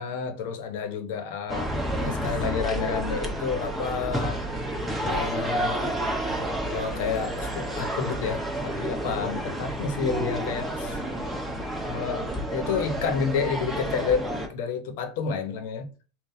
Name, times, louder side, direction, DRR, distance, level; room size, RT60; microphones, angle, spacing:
voice 1, 0.0-1.7 2.0-4.4 5.0-5.9 6.7-11.0 11.9-12.2 12.5-15.9, left 6 dB, 70° left, 1.0 m, -30 dB
sound 1, 1.5-14.5, right 1 dB, 5° right, 1.0 m, -30 dB
3.8 x 2.5 x 4.3 m
supercardioid pair, 135°, 0 cm